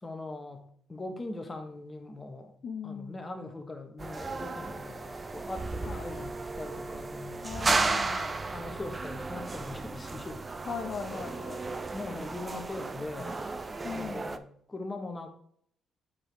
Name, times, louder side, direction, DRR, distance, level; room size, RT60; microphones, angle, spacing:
voice 1, 0.0-2.5 2.8-7.5 8.5-10.5 11.9-13.4 13.9-15.3, left 2 dB, 20° left, 5 dB, 1.2 m, -41 dB
voice 2, 2.6-3.2 5.9-6.3 7.4-8.3 10.6-11.6 13.8-14.3, left 6 dB, 55° left, 5 dB, 0.6 m, -39 dB
sound 1, 4.0-14.4, right 3 dB, 30° right, 0.5 m, -34 dB
8.4 x 4.7 x 3.4 m, 0.64 s
cardioid pair, 90°, 0 cm